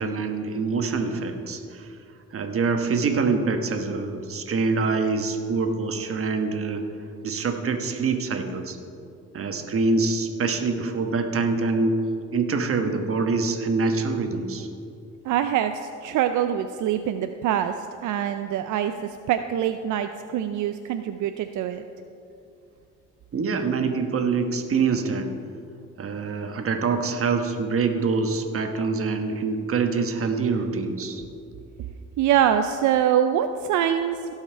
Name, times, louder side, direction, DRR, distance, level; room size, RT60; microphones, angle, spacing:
voice 1, 0.0-1.9 2.3-6.8 7.2-8.8 9.3-12.0 12.3-14.7 23.3-25.3 26.0-31.2, right 4 dB, 45° right, 5 dB, 1.2 m, -25 dB
voice 2, 15.2-17.7 18.0-21.8 32.2-34.3, right 10 dB, 75° right, 8 dB, 0.5 m, -24 dB
17.0 x 5.7 x 4.5 m, 2.5 s
cardioid pair, 90°, 30 cm